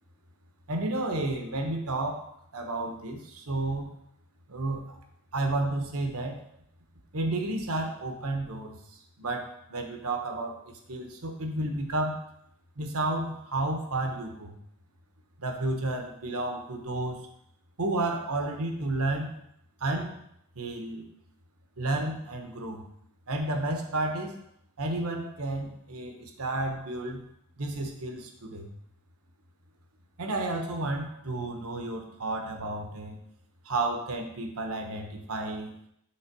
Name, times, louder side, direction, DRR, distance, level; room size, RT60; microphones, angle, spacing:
voice 1, 0.7-3.9 4.5-5.0 5.3-6.4 7.1-8.8 9.2-12.2 12.8-14.6 15.4-17.3 17.8-19.4 19.8-20.2 20.5-21.0 21.8-22.8 23.3-24.4 24.8-27.2 27.6-28.7 30.2-33.2 33.6-35.7, right 2 dB, 75° right, 4 dB, 1.1 m, -31 dB
6.4 x 3.7 x 6.0 m, 0.74 s
head